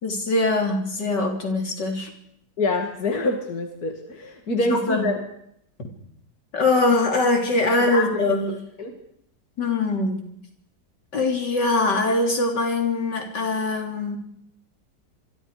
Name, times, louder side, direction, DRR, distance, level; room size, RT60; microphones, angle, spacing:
voice 1, 0.0-2.1 4.6-5.1 6.5-8.5 9.6-10.2 11.1-14.2, left 2 dB, 80° left, 3 dB, 4.2 m, -22 dB
voice 2, 2.6-5.1 7.7-8.2 8.5-8.9, left 2 dB, 60° left, 3 dB, 2.8 m, -26 dB
27.0 x 23.5 x 5.1 m, 0.73 s
omnidirectional pair, 1.8 m